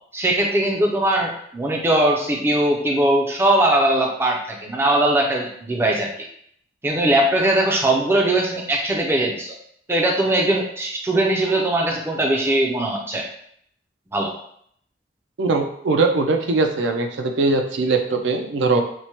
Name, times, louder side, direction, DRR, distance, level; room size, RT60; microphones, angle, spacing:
voice 1, 0.1-6.3 6.8-9.5 9.9-13.3 14.1-14.3, right 1 dB, 15° right, 0 dB, 0.4 m, -20 dB
voice 2, 15.4-18.8, right 3 dB, 75° right, 4 dB, 0.4 m, -21 dB
4.5 x 2.1 x 2.8 m, 0.67 s
head